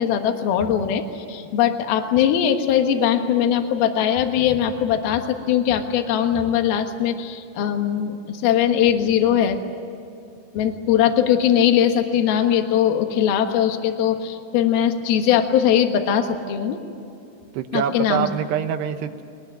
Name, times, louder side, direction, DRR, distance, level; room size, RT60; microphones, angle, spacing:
voice 1, 0.0-9.6 10.5-16.8 17.7-18.3, left 9 dB, 65° left, 6 dB, 3.0 m, -20 dB
voice 2, 17.5-19.2, right 9 dB, 75° right, 9 dB, 2.8 m, -25 dB
22.0 x 20.5 x 9.3 m, 2.6 s
omnidirectional pair, 5.2 m